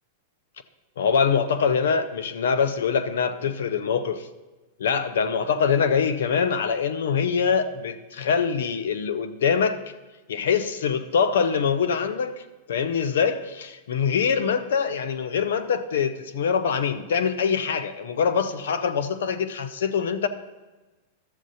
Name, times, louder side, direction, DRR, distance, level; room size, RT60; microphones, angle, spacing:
voice 1, 1.0-4.3 4.8-9.8 10.3-20.3, left 6 dB, 75° left, 10 dB, 0.6 m, -24 dB
12.5 x 7.3 x 2.7 m, 1.2 s
hypercardioid pair, 110°, 0 cm